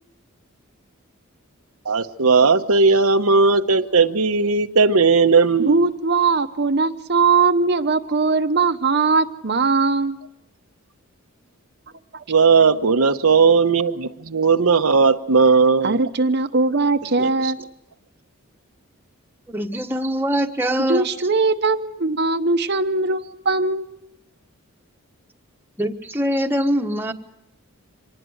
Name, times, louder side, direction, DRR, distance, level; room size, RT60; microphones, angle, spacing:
voice 1, 1.8-5.9 12.3-16.0 17.2-17.5, right 4 dB, 90° right, 7 dB, 1.0 m, -17 dB
voice 2, 5.7-10.2 12.1-12.2 15.8-17.6 20.9-24.1, right 4 dB, 50° right, 8 dB, 0.9 m, -20 dB
voice 3, 19.5-21.1 25.8-27.1, equal, 10° right, 4 dB, 1.3 m, -23 dB
25.5 x 19.5 x 7.9 m, 0.82 s
head